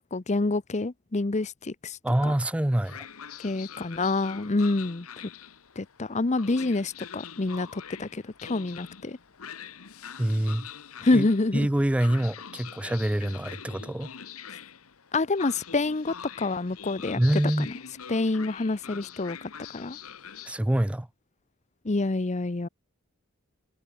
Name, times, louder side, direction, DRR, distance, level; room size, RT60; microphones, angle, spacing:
voice 1, 0.0-2.3 3.4-5.1 5.8-9.2 11.0-11.7 15.1-17.2 17.6-17.8 18.1-20.0 21.8-22.7, left 2 dB, 35° left, 0.7 m, -27 dB
voice 2, 2.0-3.0 10.2-10.7 11.1-11.3 11.5-14.1 17.2-17.7 20.4-21.1, right 1 dB, 5° right, 0.3 m, -25 dB
Train, 2.8-20.6, left 8 dB, 85° left, 1.3 m, -44 dB
head